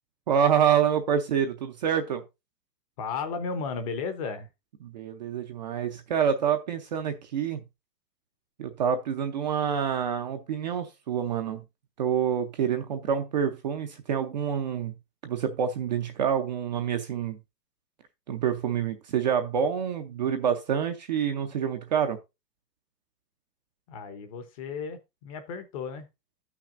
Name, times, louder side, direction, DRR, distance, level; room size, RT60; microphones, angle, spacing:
voice 1, 0.3-2.2 4.8-7.6 8.6-11.6 12.0-14.9 15.2-17.4 18.3-22.2, right 8 dB, 30° right, 0.6 m, -27 dB
voice 2, 3.0-4.5 23.9-26.1, left 5 dB, 20° left, 0.7 m, -34 dB
13.5 x 6.0 x 2.5 m
hypercardioid pair, 165°, 49 cm